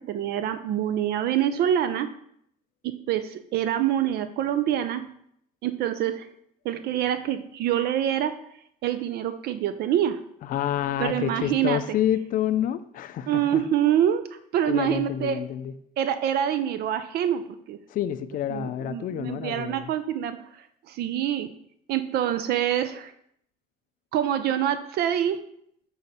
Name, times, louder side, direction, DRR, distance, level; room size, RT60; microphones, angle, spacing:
voice 1, 0.1-2.1 2.8-5.0 5.6-6.3 6.6-8.3 8.8-10.2 11.0-11.8 13.3-14.2 14.5-15.4 16.0-17.4 17.7-17.8 18.5-21.5 21.9-23.1 24.1-25.4, right 10 dB, 70° right, 0.4 m, -26 dB
voice 2, 10.4-13.6 14.7-15.7 17.9-19.9, left 10 dB, 55° left, 0.4 m, -28 dB
7.0 x 3.9 x 4.1 m
cardioid pair, 110°, 17 cm